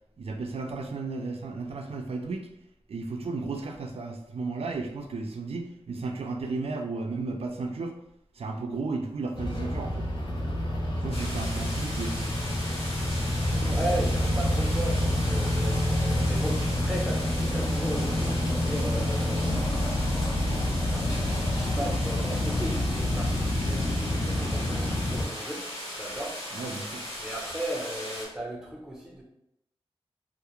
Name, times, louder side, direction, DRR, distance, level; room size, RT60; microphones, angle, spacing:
voice 1, 0.2-2.5 2.9-8.0 8.4-10.1 11.0-12.3 26.5-27.0, right 3 dB, 75° right, 3 dB, 0.4 m, -34 dB
sound 1, 9.3-25.2, left 1 dB, 50° left, 0.5 m, -27 dB
sound 2, 11.1-28.3, left 1 dB, 80° left, 0.9 m, -38 dB
voice 2, 13.6-19.4 20.9-26.4 27.2-29.2, right 1 dB, 5° right, -2 dB, 0.6 m, -36 dB
2.3 x 2.0 x 2.9 m, 0.80 s
wide cardioid pair, 80°, 10 cm